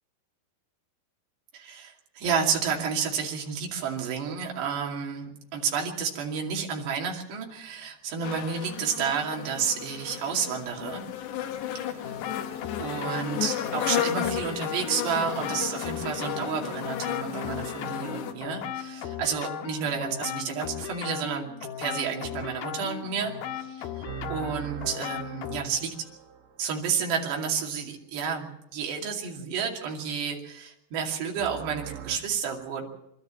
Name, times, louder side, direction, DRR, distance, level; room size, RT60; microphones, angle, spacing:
voice 1, 1.5-11.0 12.8-21.5 21.8-26.0 26.6-32.9, right 6 dB, 80° right, 0 dB, 4.7 m, -31 dB
sound 1, 8.2-18.3, left 10 dB, 85° left, 3.7 m, -34 dB
sound 2, 12.0-25.6, left 9 dB, 70° left, 3.0 m, -37 dB
sound 3, 24.0-27.1 31.3-32.2, right 10 dB, 50° right, 2.6 m, -41 dB
26.5 x 13.5 x 7.6 m, 0.79 s
omnidirectional pair, 4.8 m